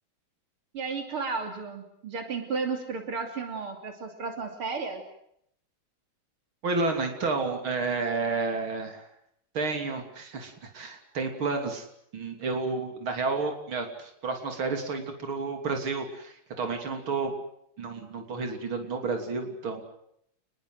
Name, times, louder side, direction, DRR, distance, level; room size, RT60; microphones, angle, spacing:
voice 1, 0.7-5.0, right 4 dB, 90° right, 4 dB, 3.9 m, -33 dB
voice 2, 6.6-9.1 9.5-11.9 12.1-17.3 17.8-19.8, right 4 dB, 70° right, 4 dB, 4.0 m, -31 dB
29.5 x 21.0 x 7.8 m, 0.73 s
omnidirectional pair, 2.3 m